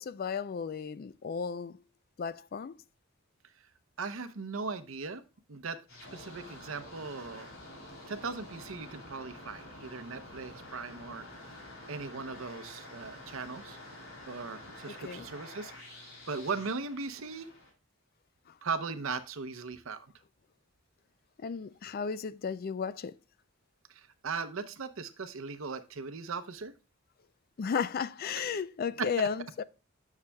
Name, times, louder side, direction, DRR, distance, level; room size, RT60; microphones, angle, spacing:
voice 1, 0.0-1.8 2.2-2.8 14.9-15.3 21.4-23.1 27.6-29.6, left 6 dB, 45° left, 0.3 m, -34 dB
voice 2, 4.0-5.2 5.5-5.8 6.1-7.5 8.1-11.2 11.5-11.6 11.9-13.8 14.3-17.5 18.6-20.1 23.9-26.7 28.3-28.4 29.0-29.1, right 4 dB, 75° right, 0.7 m, -38 dB
sound 1, 5.9-17.7, left 1 dB, 75° left, 3.4 m, -48 dB
9.8 x 6.6 x 2.2 m
head